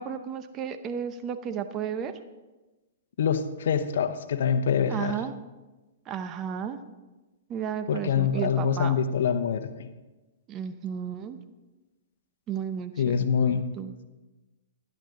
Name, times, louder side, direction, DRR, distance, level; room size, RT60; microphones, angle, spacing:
voice 1, 0.0-2.1 4.9-5.3 6.1-6.8 7.5-9.0 10.5-11.4 12.5-13.9, right 8 dB, 25° right, 9 dB, 0.8 m, -33 dB
voice 2, 3.2-5.2 7.9-9.7 13.0-13.6, left 7 dB, 70° left, 7 dB, 0.9 m, -25 dB
12.0 x 11.0 x 3.8 m, 1.1 s
hypercardioid pair, 140°, 0 cm